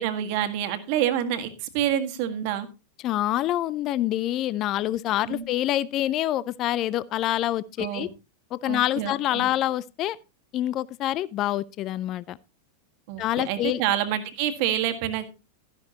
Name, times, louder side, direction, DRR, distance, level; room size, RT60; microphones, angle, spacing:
voice 1, 0.0-2.7 5.3-5.4 7.8-8.1 8.6-9.5 13.1-15.2, right 11 dB, 45° right, 1.7 m, -27 dB
voice 2, 3.0-8.1 8.5-10.2 10.5-12.4 13.2-13.8, left 13 dB, 35° left, 0.5 m, -26 dB
13.0 x 11.0 x 2.9 m
figure-of-eight pair, 90°, 0 cm